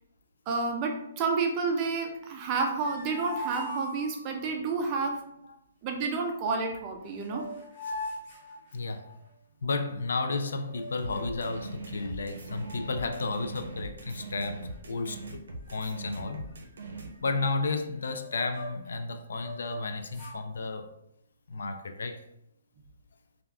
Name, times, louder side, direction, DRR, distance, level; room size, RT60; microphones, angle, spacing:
voice 1, 0.5-5.2 5.8-7.5, right 4 dB, 20° right, 0.3 m, -30 dB
sound 1, 2.5-4.5 6.7-6.8 7.0-9.3 10.6-11.4 12.0-12.1 12.3-13.5 13.8-14.1 14.7-15.3 15.6-15.8 16.0-18.9 19.3-20.4, equal, 15° left, 1.0 m, -42 dB
voice 2, 8.7-9.1 9.6-15.4 15.7-16.4 17.2-20.9 21.5-22.3, left 3 dB, 75° left, 0.3 m, -32 dB
sound 2, 11.0-17.1, right 2 dB, 80° right, 0.6 m, -41 dB
3.4 x 2.3 x 2.3 m
hypercardioid pair, 175°, 0 cm